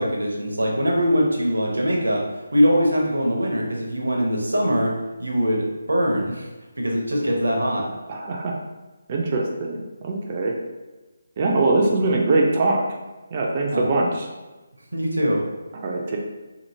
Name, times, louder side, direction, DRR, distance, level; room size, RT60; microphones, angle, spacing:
voice 1, 0.0-2.2 2.5-4.9 5.2-6.5 6.8-7.9 13.7-13.8 14.9-15.4, equal, 75° right, 0 dB, 0.7 m, -22 dB
voice 2, 8.1-8.6 9.1-10.5 11.4-12.8 13.3-14.3 15.8-16.2, right 2 dB, 35° right, 0 dB, 0.4 m, -22 dB
2.8 x 2.7 x 2.6 m, 1.1 s
figure-of-eight pair, 150°, 0 cm